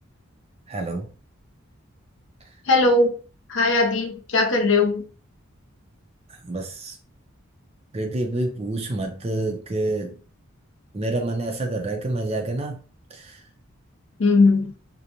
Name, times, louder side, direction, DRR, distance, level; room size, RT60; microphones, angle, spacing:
voice 1, 0.7-1.1 6.4-7.0 7.9-10.1 10.9-12.8 13.1-13.4, right 2 dB, 30° right, 0.5 m, -27 dB
voice 2, 2.6-3.1 3.5-5.0 14.2-14.7, left 3 dB, 60° left, 0.6 m, -19 dB
2.5 x 2.1 x 2.9 m
head